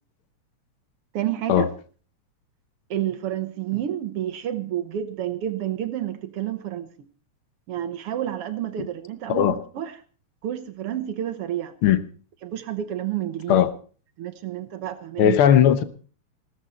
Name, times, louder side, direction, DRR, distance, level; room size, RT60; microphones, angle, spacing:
voice 1, 1.1-1.7 2.9-6.9 7.7-10.0 10.4-11.7 12.4-13.6 14.2-15.4, right 11 dB, 65° right, 1.6 m, -29 dB
voice 2, 15.2-15.8, left 10 dB, 65° left, 1.4 m, -17 dB
16.5 x 13.5 x 4.2 m
omnidirectional pair, 3.4 m